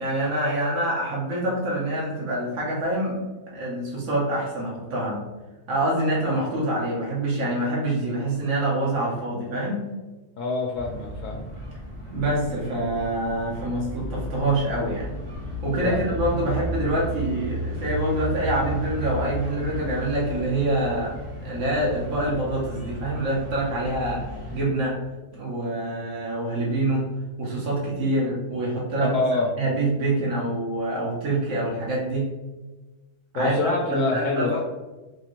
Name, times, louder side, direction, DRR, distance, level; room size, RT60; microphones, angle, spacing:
voice 1, 0.0-3.2 3.5-5.2 5.7-9.8 12.1-15.1 15.6-21.1 21.4-24.2 24.5-25.0 25.3-27.1 27.4-29.2 29.6-32.3 33.3-34.6, right 1 dB, 80° right, -5 dB, 1.3 m, -26 dB
voice 2, 10.4-11.5 15.8-16.1 29.1-29.5 33.3-34.6, left 3 dB, 85° left, -1 dB, 1.0 m, -25 dB
sound 1, 10.7-24.6, right 1 dB, 30° right, 0.7 m, -34 dB
4.2 x 2.5 x 3.0 m, 1.2 s
omnidirectional pair, 1.3 m